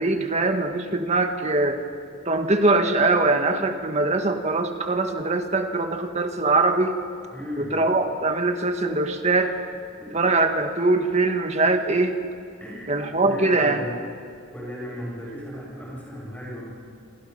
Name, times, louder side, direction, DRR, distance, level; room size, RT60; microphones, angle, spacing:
voice 1, 0.0-1.8 2.3-7.0 7.6-9.5 10.1-12.2 12.9-13.8, right 2 dB, 35° right, 6 dB, 1.7 m, -22 dB
voice 2, 7.3-7.8 10.0-10.2 12.6-12.9 13.2-14.1 14.5-16.6, equal, 10° left, -4 dB, 7.3 m, -36 dB
27.5 x 27.5 x 5.5 m, 2.3 s
head